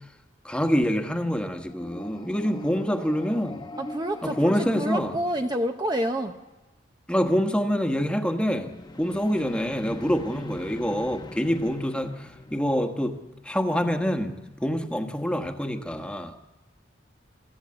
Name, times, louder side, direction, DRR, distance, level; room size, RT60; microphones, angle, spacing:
voice 1, 0.4-3.7 4.2-5.1 7.1-13.2 13.4-16.3, equal, 5° left, 1.2 m, -26 dB
sound 1, 1.6-6.0 8.5-13.5, left 1 dB, 25° left, 0.9 m, -42 dB
voice 2, 3.8-6.3, equal, 20° right, 0.7 m, -28 dB
23.0 x 14.0 x 8.5 m
head